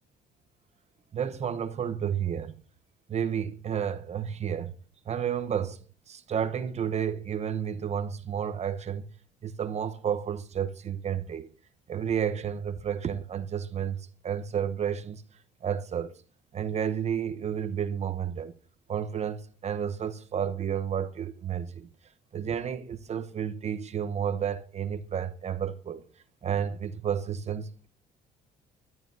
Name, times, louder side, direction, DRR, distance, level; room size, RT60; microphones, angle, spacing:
voice 1, 1.1-2.5 3.1-4.7 5.1-5.8 6.1-9.0 9.4-11.5 11.9-15.2 15.6-16.1 16.5-18.5 18.9-21.9 22.3-26.0 26.4-27.9, right 8 dB, 40° right, 0.9 m, -31 dB
21.5 x 12.5 x 2.7 m
cardioid pair, 110°, 17 cm